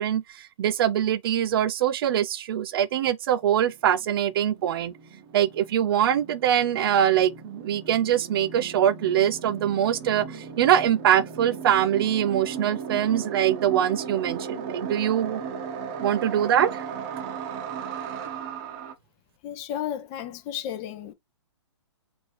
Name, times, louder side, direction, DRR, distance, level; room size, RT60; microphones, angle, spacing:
voice 1, 0.0-4.9 5.3-15.4 16.0-16.9, right 10 dB, 50° right, 0.4 m, -23 dB
sound 1, 3.4-3.5 3.7-19.0, right 6 dB, 30° right, 0.8 m, -36 dB
voice 2, 19.4-21.1, left 10 dB, 30° left, 0.7 m, -33 dB
4.2 x 2.6 x 3.2 m
hypercardioid pair, 140°, 16 cm